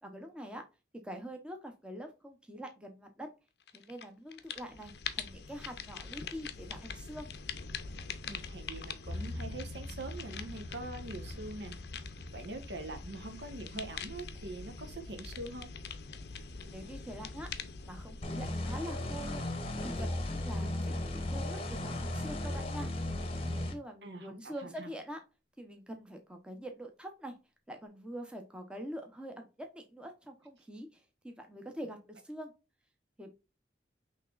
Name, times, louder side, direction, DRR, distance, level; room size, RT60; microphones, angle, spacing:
voice 1, 0.0-0.6 1.0-3.3 3.7-7.3 16.7-17.5 17.8-19.4 19.8-25.2 25.6-27.4 27.7-32.5 33.2-33.3, equal, 5° right, 3 dB, 0.7 m, -45 dB
sound 1, 3.7-4.1 4.3-19.3, left 6 dB, 65° left, 0.5 m, -44 dB
voice 2, 8.3-11.7 12.3-15.7 24.0-24.9, right 2 dB, 70° right, 6 dB, 1.0 m, -43 dB
sound 2, 9.0-20.6, left 1 dB, 25° right, 1.4 m, -48 dB
sound 3, 18.2-23.7, left 1 dB, 30° left, 0.8 m, -35 dB
5.7 x 3.2 x 2.4 m, 0.28 s
head